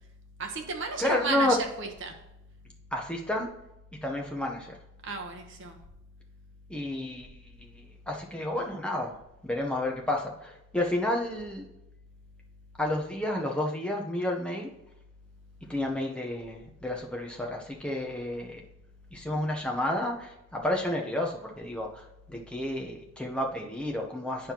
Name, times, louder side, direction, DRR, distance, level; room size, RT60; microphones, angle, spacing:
voice 1, 0.4-2.2 5.0-5.8, right 4 dB, 55° right, 3 dB, 1.1 m, -34 dB
voice 2, 1.0-1.6 2.9-3.5 4.0-4.8 6.7-9.1 9.4-11.7 12.8-14.7 15.7-18.6 19.1-24.5, left 1 dB, 5° left, 0 dB, 0.8 m, -31 dB
9.2 x 5.5 x 2.9 m, 0.90 s
head